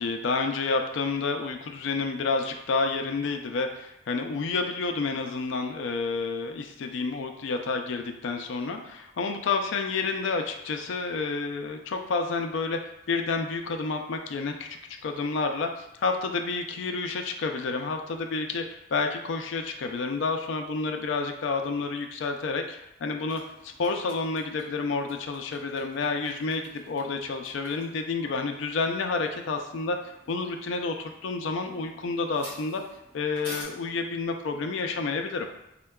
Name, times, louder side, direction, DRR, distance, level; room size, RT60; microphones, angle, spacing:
voice 1, 0.0-12.8 13.1-14.7 15.0-30.0 30.3-32.8 33.1-35.5, left 4 dB, 75° left, 5 dB, 0.4 m, -29 dB
sound 1, 23.3-33.6, equal, 10° right, 1.2 m, -50 dB
4.4 x 2.2 x 2.2 m, 0.84 s
head